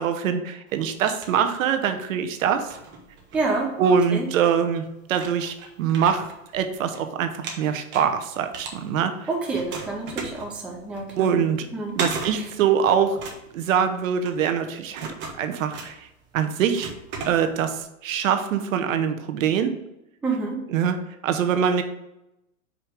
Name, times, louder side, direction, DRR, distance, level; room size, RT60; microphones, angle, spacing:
voice 1, 0.0-2.8 3.8-4.8 5.1-6.3 6.5-9.3 11.2-11.7 11.9-13.2 13.5-16.0 16.3-16.9 17.2-19.7 20.7-21.0 21.2-21.8, right 7 dB, 70° right, 8 dB, 0.9 m, -23 dB
sound 1, 0.7-2.0 2.4-4.1 4.7-4.8 5.1-7.0 7.3-9.2 9.5-17.8, right 4 dB, 25° right, 1.1 m, -36 dB
voice 2, 3.3-3.7 4.1-4.3 9.3-11.4 11.7-11.9 12.3-12.5 20.2-20.6, right 3 dB, 5° right, -1 dB, 0.4 m, -28 dB
5.1 x 4.4 x 5.1 m, 0.88 s
supercardioid pair, 145°, 41 cm